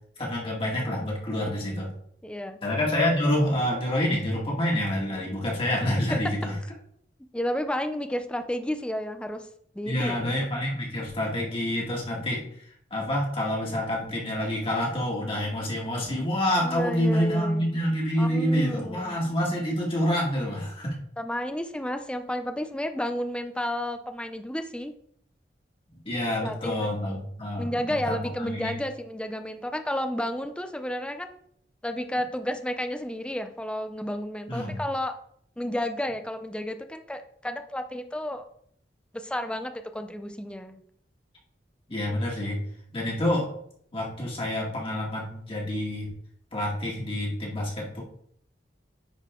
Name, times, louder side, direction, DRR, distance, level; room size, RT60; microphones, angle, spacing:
voice 1, 0.2-1.9 2.6-6.5 9.9-12.7 12.9-21.0 26.1-27.7 28.1-28.8 34.5-34.8 41.9-42.6 42.9-43.5 43.9-46.1 46.5-48.0, left 1 dB, 30° left, -3 dB, 1.9 m, -27 dB
voice 2, 2.2-2.6 7.3-9.5 9.7-10.2 16.6-17.7 18.2-19.2 21.2-24.9 26.4-26.7 27.6-31.4 31.8-35.2 35.6-38.5 39.1-40.8, equal, 5° left, 7 dB, 0.5 m, -31 dB
10.0 x 4.0 x 3.7 m, 0.66 s
head